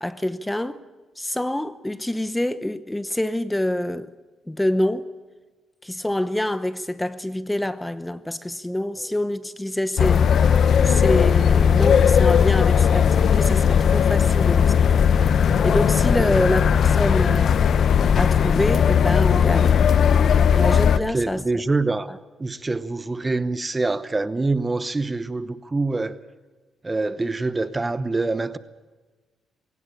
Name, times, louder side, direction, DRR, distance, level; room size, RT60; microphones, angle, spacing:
voice 1, 0.0-0.8 1.2-4.1 4.5-5.1 5.8-10.3 10.8-14.9 15.6-17.5 18.2-19.9 20.5-21.4 22.1-22.2, left 1 dB, 10° left, 0.8 m, -26 dB
sound 1, 10.0-21.0, left 7 dB, 60° left, 0.8 m, -17 dB
voice 2, 20.9-22.1 22.4-26.2 26.8-28.6, right 3 dB, 20° right, 0.9 m, -25 dB
21.0 x 18.0 x 8.6 m
cardioid pair, 90°, 0 cm